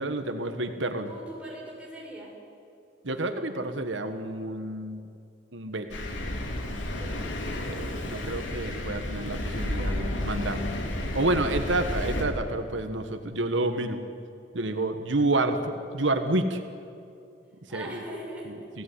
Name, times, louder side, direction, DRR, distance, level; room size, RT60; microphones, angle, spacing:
voice 1, 0.0-1.1 3.0-5.0 5.5-6.0 7.7-10.6 11.1-14.0 14.5-16.6 17.7-18.0, right 2 dB, 85° right, 7 dB, 1.6 m, -29 dB
voice 2, 1.1-2.3 6.9-7.3 17.7-18.6, right 1 dB, 5° right, -3 dB, 6.9 m, -41 dB
Thunder, 5.9-12.2, left 1 dB, 85° left, 3.3 m, -32 dB
28.0 x 17.0 x 9.9 m, 2.6 s
head